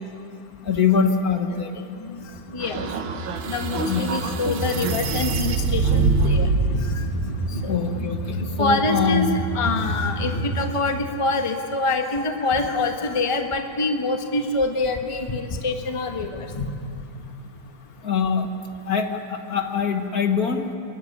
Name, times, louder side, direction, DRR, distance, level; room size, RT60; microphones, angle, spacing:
voice 1, 0.6-1.8 3.8-4.2 7.7-9.3 18.0-18.5 18.9-20.7, left 6 dB, 50° left, 5 dB, 1.6 m, -23 dB
sound 1, 2.1-10.5, equal, 85° left, 7.0 m, -30 dB
voice 2, 2.5-2.8 3.5-7.0 7.6-8.1 8.6-16.7, left 3 dB, 20° left, 4 dB, 1.2 m, -25 dB
sound 2, 2.6-6.6, right 4 dB, 80° right, 2.0 m, -24 dB
26.0 x 15.5 x 9.8 m, 2.5 s
omnidirectional pair, 2.1 m